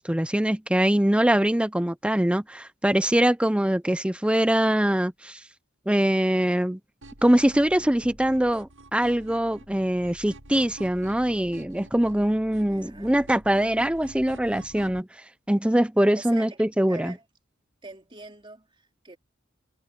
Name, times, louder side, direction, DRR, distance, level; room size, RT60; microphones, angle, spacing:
voice 1, 0.0-5.4 5.9-6.8 7.2-15.1 15.5-17.1, right 1 dB, 5° right, 0.7 m, -23 dB
sound 1, 7.0-15.0, right 1 dB, 85° right, 6.4 m, -47 dB
voice 2, 12.5-13.1 16.1-17.3 17.8-19.2, right 3 dB, 25° right, 3.1 m, -44 dB
head